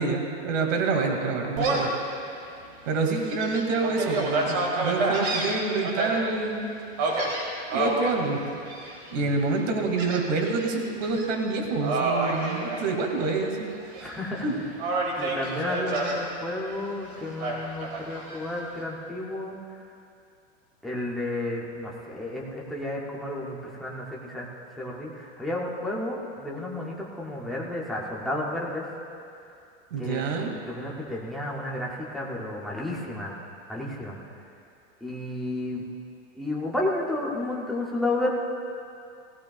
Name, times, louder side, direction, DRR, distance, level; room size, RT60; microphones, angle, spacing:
voice 1, 0.0-1.9 2.9-6.7 7.7-8.4 9.1-13.7 14.4-14.5 29.9-30.5, right 3 dB, 80° right, 2 dB, 2.2 m, -27 dB
Gull seagull, 1.6-2.0 2.5-2.6 3.1-6.1 7.0-8.1 8.7-9.1 10.0-10.7 11.0-11.3 11.8-13.4 13.7-14.4 14.8-16.2 17.4-18.4, right 2 dB, 35° right, 2.1 m, -28 dB
voice 2, 14.0-14.4 15.2-19.6 20.8-24.5 24.8-28.9 30.0-30.2 30.7-33.3 33.7-34.2 35.0-35.9 36.3-38.3, left 1 dB, ahead, -5 dB, 0.4 m, -32 dB
18.0 x 16.5 x 2.3 m, 2.5 s
supercardioid pair, 170°, 38 cm